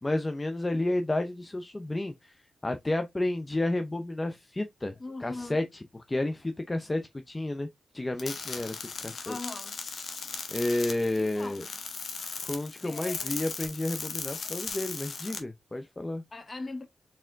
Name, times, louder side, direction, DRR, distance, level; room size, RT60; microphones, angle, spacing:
voice 1, 0.0-5.6 6.1-7.7 7.9-9.4 10.5-11.6 12.4-16.2, left 1 dB, 25° left, 0.6 m, -31 dB
voice 2, 5.0-5.6 9.2-9.8 11.2-11.7 12.8-13.4 16.3-16.9, left 2 dB, 40° left, 1.1 m, -40 dB
sound 1, 8.2-15.4, left 5 dB, 70° left, 1.1 m, -38 dB
4.4 x 3.5 x 2.5 m
cardioid pair, 60°, 0 cm